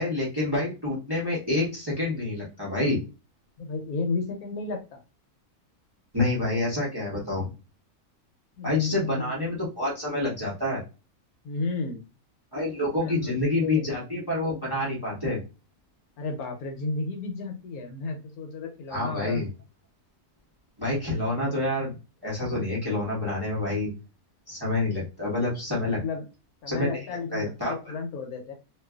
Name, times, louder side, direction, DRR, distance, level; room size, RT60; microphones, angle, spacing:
voice 1, 0.0-3.0 6.1-7.5 8.6-10.8 12.5-15.4 18.9-19.5 20.8-21.9 22.2-23.9 24.5-26.0 26.7-27.0 27.3-27.7, left 2 dB, 20° right, -5 dB, 0.8 m, -27 dB
voice 2, 3.6-5.0 8.6-9.4 11.4-12.0 12.9-13.9 16.2-19.4 25.9-26.2 26.6-28.5, left 3 dB, 70° left, 3 dB, 1.1 m, -33 dB
2.6 x 2.4 x 2.3 m, 0.30 s
omnidirectional pair, 1.6 m